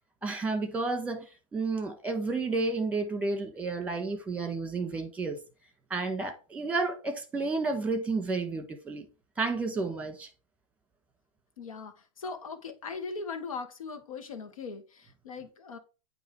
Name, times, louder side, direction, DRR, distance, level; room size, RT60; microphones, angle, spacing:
voice 1, 0.2-5.4 5.9-9.1 9.4-10.3, right 3 dB, 10° right, 1.6 m, -31 dB
voice 2, 11.6-15.8, left 4 dB, 85° left, 1.5 m, -39 dB
9.0 x 3.1 x 4.7 m
hypercardioid pair, 125°, 17 cm